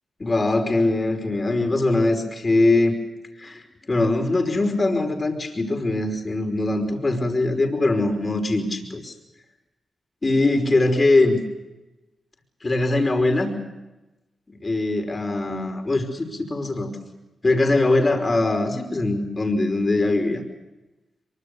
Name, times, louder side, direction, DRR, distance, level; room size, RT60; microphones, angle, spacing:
voice 1, 0.2-3.0 3.4-9.1 10.2-11.4 12.6-13.5 14.5-16.9 17.4-20.4, left 2 dB, 40° left, 4 dB, 5.3 m, -22 dB
24.0 x 24.0 x 6.9 m, 1.0 s
supercardioid pair, 40°, 0 cm